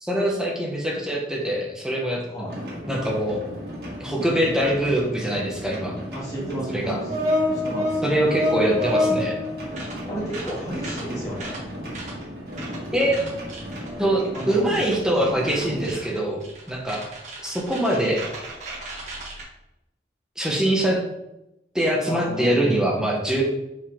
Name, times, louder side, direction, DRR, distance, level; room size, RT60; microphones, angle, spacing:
voice 1, 0.0-2.2 2.9-3.5 4.0-6.0 6.7-7.0 8.0-9.4 12.9-13.2 14.0-17.0 17.4-18.2 20.4-21.0 21.7-23.4, right 1 dB, 5° right, -2 dB, 1.0 m, -23 dB
sound 1, 2.5-16.0, equal, 60° right, 1.8 m, -35 dB
voice 2, 6.1-7.2 7.5-8.0 10.1-11.6 14.3-14.7 22.1-22.9, equal, 20° left, -6 dB, 2.2 m, -33 dB
sound 2, 6.3-9.9 10.3-10.5 10.8-11.0 11.4-11.6 11.9-12.1 12.5-12.8 13.1-19.4, left 1 dB, 45° right, 1.7 m, -28 dB
5.3 x 4.8 x 3.6 m, 0.89 s
head